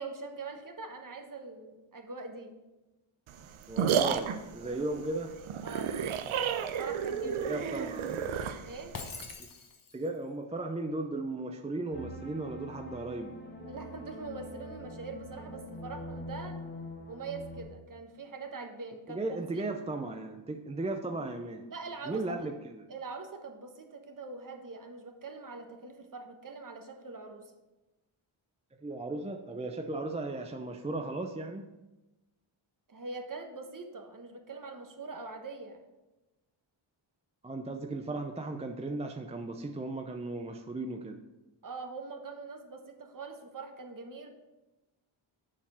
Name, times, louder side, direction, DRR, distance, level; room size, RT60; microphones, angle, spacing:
voice 1, 0.0-2.5 4.6-4.9 5.6-6.0 6.8-7.9 8.6-9.1 13.6-16.6 17.1-19.2 19.5-19.6 21.7-22.3 22.9-27.5 32.9-35.8 41.6-44.3, right 3 dB, 40° right, 5 dB, 1.2 m, -43 dB
sound 1, 3.3-9.3, right 8 dB, 70° right, 0.7 m, -32 dB
voice 2, 3.7-5.3 7.2-8.2 9.4-9.5 9.9-13.4 19.1-21.7 22.1-22.9 28.8-31.7 37.4-41.2, right 2 dB, 15° right, 4 dB, 0.5 m, -36 dB
Shatter, 8.9-10.2, left 5 dB, 40° left, 1.0 m, -43 dB
sound 2, 11.9-17.6, left 1 dB, 20° left, 1.3 m, -44 dB
7.3 x 4.4 x 5.7 m, 1.0 s
cardioid pair, 70°, 49 cm